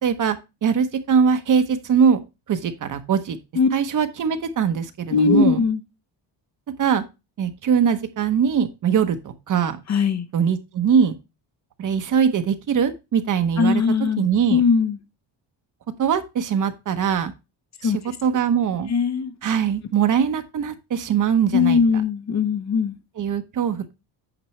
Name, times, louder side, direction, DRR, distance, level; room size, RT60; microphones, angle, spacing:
voice 1, 0.0-2.2 2.5-3.4 3.7-5.6 6.8-7.0 7.4-9.8 10.3-11.1 11.8-13.8 14.2-14.6 16.0-17.3 17.8-17.9 18.2-18.9 19.4-21.8 23.2-23.9, right 7 dB, 45° right, 0.9 m, -21 dB
voice 2, 5.1-5.8 9.9-10.3 13.6-14.3 14.5-15.0 17.8-18.0 18.9-19.3 21.5-23.0, left 5 dB, 40° left, 0.8 m, -19 dB
8.8 x 6.0 x 3.1 m
cardioid pair, 150°, 43 cm